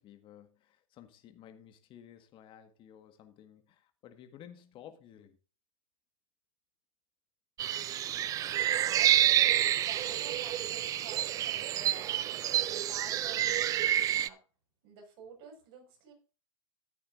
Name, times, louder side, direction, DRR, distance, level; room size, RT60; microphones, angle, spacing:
voice 1, 0.0-5.4, left 10 dB, 30° left, 1.7 m, -54 dB
sound 1, 7.6-14.3, right 12 dB, 20° right, 0.4 m, -28 dB
voice 2, 8.7-9.6 9.8-14.4 14.8-16.1, right 5 dB, 50° right, 5.9 m, -51 dB
14.5 x 8.6 x 2.6 m
hypercardioid pair, 110°, 17 cm